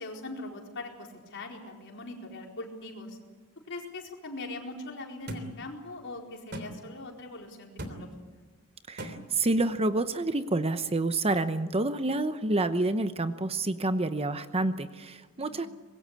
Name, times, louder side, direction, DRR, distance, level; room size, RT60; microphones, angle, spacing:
voice 1, 0.0-3.2 3.7-8.4 15.4-15.7, left 2 dB, 55° left, 1 dB, 4.5 m, -41 dB
sound 1, 5.3-5.5 6.5-6.7 7.8-8.0 9.0-9.1, equal, 50° right, 3.2 m, -37 dB
voice 2, 8.9-15.7, right 2 dB, 25° right, 10 dB, 0.9 m, -28 dB
24.5 x 21.0 x 8.4 m, 1.3 s
head